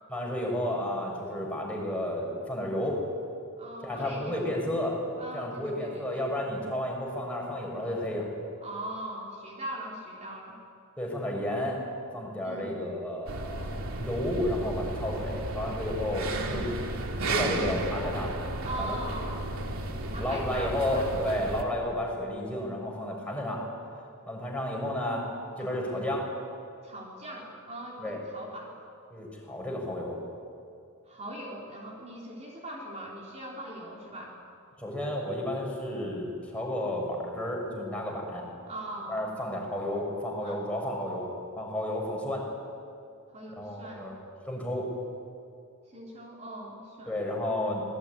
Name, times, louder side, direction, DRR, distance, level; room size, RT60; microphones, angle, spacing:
voice 1, 0.1-3.0 3.8-8.3 11.0-11.8 12.1-16.2 16.5-16.7 17.3-18.3 18.8-19.0 20.1-23.6 24.3-25.2 25.6-26.2 28.0-28.2 29.1-30.2 34.8-38.4 39.1-41.3 41.5-42.4 43.6-44.2 44.5-44.8 47.1-47.8, left 1 dB, 5° left, -1 dB, 6.5 m, -32 dB
voice 2, 3.6-4.5 5.2-6.3 8.6-10.6 12.4-12.9 16.3-16.6 18.6-19.4 20.1-21.1 25.6-26.0 26.8-28.7 31.1-34.4 38.7-39.3 40.4-40.6 43.3-44.1 45.9-47.1 47.6-47.7, right 1 dB, 35° right, -3 dB, 3.5 m, -41 dB
sound 1, 13.3-21.6, right 2 dB, 75° right, 2.7 m, -33 dB
26.0 x 20.5 x 9.8 m, 2.5 s
head